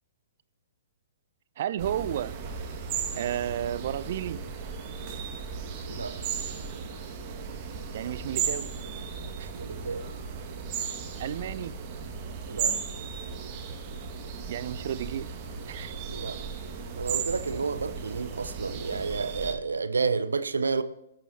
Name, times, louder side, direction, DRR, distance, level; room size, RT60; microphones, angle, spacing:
voice 1, 1.6-2.4 3.2-4.4 7.9-8.7 9.4-9.5 11.2-11.7 14.4-15.3 15.7-15.9, right 11 dB, 50° right, 0.5 m, -32 dB
sound 1, 1.8-19.5, right 6 dB, 35° right, 2.0 m, -36 dB
voice 2, 9.5-10.0 12.5-12.7 16.1-16.4 17.0-20.8, right 4 dB, 75° right, 0.8 m, -30 dB
20.0 x 8.9 x 2.9 m
figure-of-eight pair, 120°, 0 cm